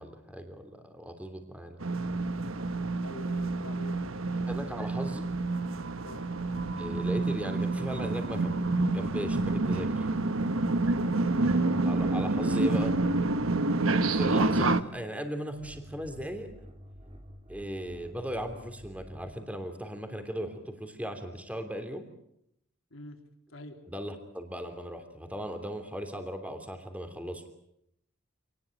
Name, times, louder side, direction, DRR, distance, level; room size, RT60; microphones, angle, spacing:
voice 1, 0.0-1.8 4.5-5.3 6.8-8.6 8.9-10.1 11.8-12.9 14.1-16.5 17.5-22.1 23.9-27.4, equal, 5° right, 6 dB, 3.1 m, -37 dB
sound 1, 1.8-14.8, right 2 dB, 75° right, 1.2 m, -28 dB
voice 2, 3.0-4.0 6.0-6.2 11.0-11.7 22.9-23.2 23.5-23.8, left 1 dB, 70° left, 4 dB, 3.9 m, -46 dB
sound 2, 6.3-7.2 9.2-10.1 10.9-13.9 15.5-19.4, equal, 25° right, 3.6 m, -50 dB
27.0 x 19.5 x 9.1 m, 0.77 s
head